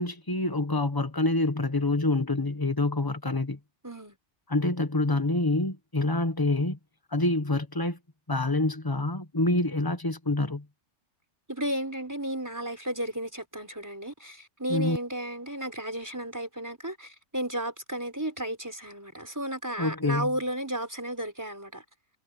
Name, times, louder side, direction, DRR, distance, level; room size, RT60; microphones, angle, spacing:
voice 1, 0.0-3.6 4.5-6.8 7.1-8.0 8.3-10.6 14.7-15.0 19.8-20.3, left 2 dB, 20° left, 1.3 m, -26 dB
voice 2, 3.8-4.2 11.5-21.8, right 1 dB, 15° right, 5.0 m, -33 dB
omnidirectional pair, 1.2 m